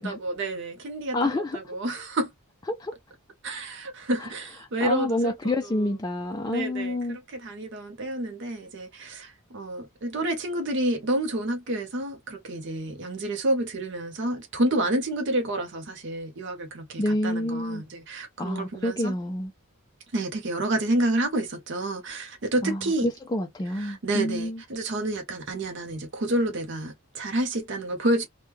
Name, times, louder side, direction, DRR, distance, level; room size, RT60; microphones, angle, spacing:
voice 1, 0.0-2.3 3.4-5.9 6.5-19.2 20.1-23.1 23.7-28.3, right 1 dB, 55° right, 0.6 m, -29 dB
voice 2, 1.1-1.6 2.8-2.9 4.2-4.3 4.8-7.2 17.0-17.8 18.4-19.5 22.6-24.6, left 1 dB, 15° left, 0.3 m, -28 dB
3.0 x 2.1 x 3.3 m
head